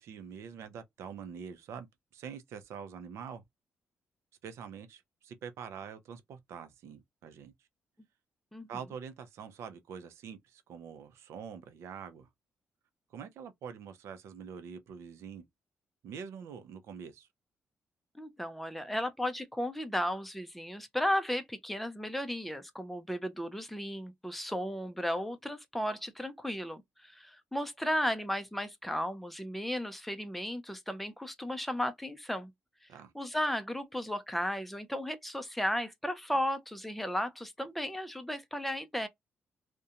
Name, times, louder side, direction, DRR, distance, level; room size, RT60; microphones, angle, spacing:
voice 1, 0.0-1.9 2.1-3.4 4.4-7.5 8.7-12.3 13.1-15.5 16.0-17.3 32.9-33.1, right 7 dB, 85° right, 0.5 m, -45 dB
voice 2, 18.2-32.5 33.1-39.1, equal, ahead, 0.4 m, -34 dB
2.5 x 2.1 x 2.7 m
cardioid pair, 160°, 5 cm